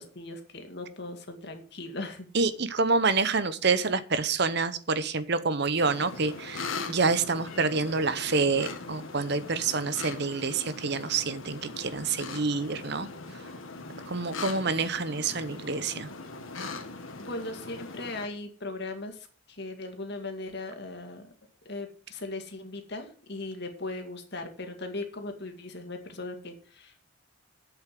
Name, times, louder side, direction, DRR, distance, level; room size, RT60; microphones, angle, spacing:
voice 1, 0.0-2.3 14.5-14.7 17.2-21.3 21.7-27.1, left 2 dB, 50° left, 5 dB, 2.2 m, -38 dB
voice 2, 2.3-13.1 14.1-16.1, right 4 dB, 50° right, 13 dB, 0.9 m, -27 dB
sound 1, 5.8-18.3, left 3 dB, 75° left, 1.8 m, -40 dB
8.1 x 7.3 x 7.6 m, 0.40 s
head